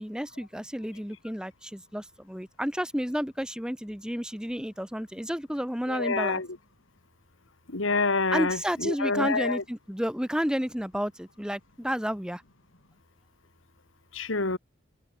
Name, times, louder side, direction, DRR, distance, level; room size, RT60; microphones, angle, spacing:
voice 1, 0.0-6.4 8.3-12.4, equal, 5° right, 2.3 m, -31 dB
voice 2, 5.9-6.5 7.7-9.6 14.1-14.6, left 3 dB, 75° left, 2.2 m, -27 dB
head